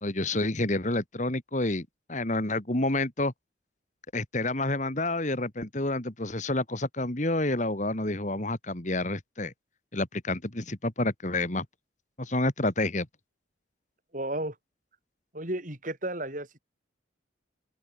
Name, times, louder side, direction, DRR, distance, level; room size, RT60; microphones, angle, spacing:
voice 1, 0.0-3.3 4.1-9.5 9.9-11.7 12.2-13.1, left 2 dB, 40° left, 2.2 m, -29 dB
voice 2, 14.1-14.6 15.3-16.6, right 1 dB, 40° right, 4.1 m, -33 dB
open air
head